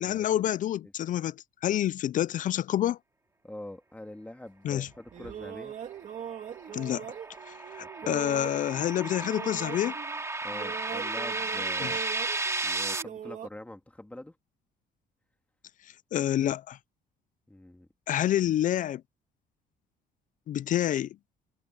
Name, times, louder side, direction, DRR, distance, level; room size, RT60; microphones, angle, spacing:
voice 1, 0.0-1.3 1.6-3.0 4.6-4.9 6.7-7.0 7.5-10.0 11.8-11.9 16.1-16.8 18.1-19.0 20.5-21.1, left 12 dB, 50° left, 0.4 m, -28 dB
voice 2, 3.4-5.8 8.0-8.2 10.4-12.0 12.6-14.4 17.5-17.9, left 1 dB, 10° left, 2.4 m, -44 dB
sound 1, 4.9-10.2 10.5-13.5, right 9 dB, 50° right, 3.3 m, -41 dB
sound 2, 6.2-13.0, right 3 dB, 15° right, 2.4 m, -34 dB
cardioid pair, 110°, 17 cm